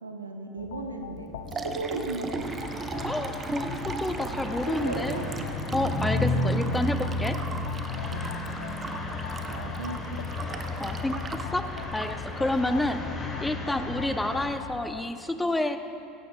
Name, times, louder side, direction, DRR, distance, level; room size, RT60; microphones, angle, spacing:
voice 1, 0.0-2.8 4.7-5.4 6.1-6.2 8.1-8.4 9.5-10.5 12.7-12.9 13.8-14.0, right 3 dB, 85° right, 5 dB, 0.8 m, -37 dB
sound 1, 0.6-15.0, left 11 dB, 70° left, 0.3 m, -43 dB
Liquid, 1.1-13.1, right 4 dB, 30° right, 0.7 m, -38 dB
sound 2, 2.4-14.5, left 2 dB, 30° left, 2.7 m, -33 dB
voice 2, 3.0-5.2 5.7-7.4 10.8-15.8, left 1 dB, 10° left, 8 dB, 0.7 m, -29 dB
16.0 x 15.5 x 2.3 m, 2.8 s
figure-of-eight pair, 75°, 0 cm